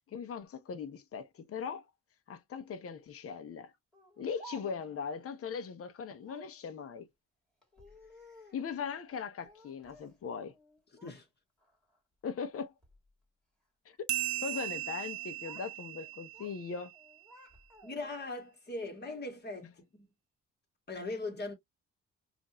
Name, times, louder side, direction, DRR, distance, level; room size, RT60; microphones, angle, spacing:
voice 1, 0.1-1.8 2.3-3.7 4.2-7.1 8.5-10.5 12.2-12.7 13.8-14.0 14.4-16.9, left 6 dB, 50° left, 0.9 m, -39 dB
Speech, 3.9-5.0 6.2-6.6 7.6-8.7 9.4-10.2 10.5-11.2 11.6-12.0 12.7-13.0 14.1-14.8 15.1-15.7 16.0-16.6 16.9-18.2, right 1 dB, ahead, 2.3 m, -55 dB
sound 1, 14.1-17.1, right 14 dB, 50° right, 0.6 m, -38 dB
voice 2, 17.8-20.1 20.9-21.5, left 2 dB, 35° left, 2.0 m, -40 dB
5.1 x 2.7 x 3.0 m
cardioid pair, 90°, 30 cm